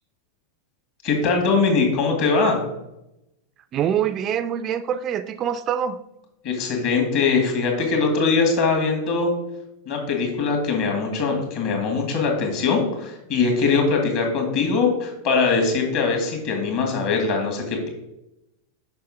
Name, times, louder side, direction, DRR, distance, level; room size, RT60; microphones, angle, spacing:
voice 1, 1.0-2.6 6.4-9.3 9.9-17.9, left 4 dB, 45° left, 2.1 m, -21 dB
voice 2, 3.7-6.0, right 9 dB, 30° right, 0.3 m, -24 dB
6.7 x 5.6 x 3.7 m
figure-of-eight pair, 90°, 0 cm